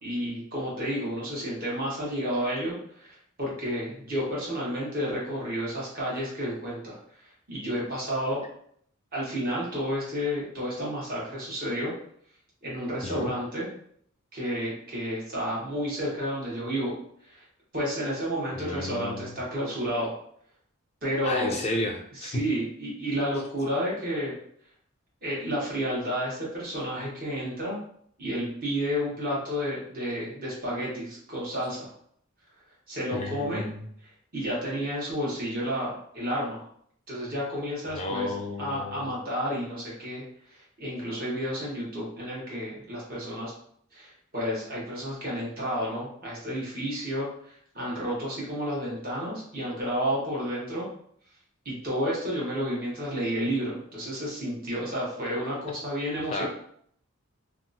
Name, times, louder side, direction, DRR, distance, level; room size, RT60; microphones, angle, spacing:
voice 1, 0.0-7.0 7.5-8.4 9.1-11.9 12.6-13.7 14.3-16.9 17.3-17.4 17.7-20.1 21.0-21.6 22.2-24.4 25.2-27.8 28.2-31.9 32.9-33.7 34.3-36.6 37.1-38.3 38.6-40.2 40.8-43.5 43.9-47.3 47.7-50.9 51.6-56.5, equal, 45° right, -6 dB, 1.2 m, -31 dB
voice 2, 18.6-19.3 21.2-22.4 33.1-33.9 37.9-39.2 56.3-56.4, left 2 dB, 30° left, 2 dB, 0.3 m, -32 dB
2.8 x 2.4 x 2.6 m, 0.65 s
head